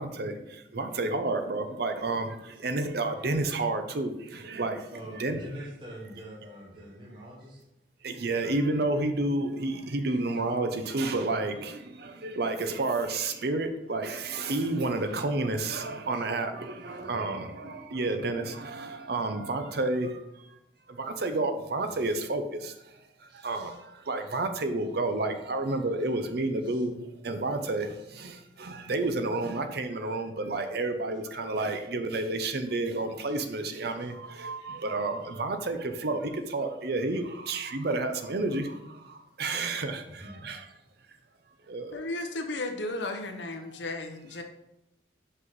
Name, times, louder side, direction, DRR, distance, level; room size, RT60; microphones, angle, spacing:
voice 1, 0.0-4.9 5.2-5.4 8.0-20.6 20.9-40.7 41.7-42.0, right 2 dB, 55° right, 0.7 m, -31 dB
voice 2, 4.9-7.6 16.1-16.2 17.0-17.4 19.2-19.3 23.3-23.8 26.6-26.8 28.0-28.1 33.2-33.4 34.0-34.8 40.1-40.4, right 1 dB, 25° right, 1.1 m, -46 dB
voice 3, 41.9-44.4, left 2 dB, 75° left, 0.9 m, -34 dB
5.6 x 5.5 x 4.0 m
head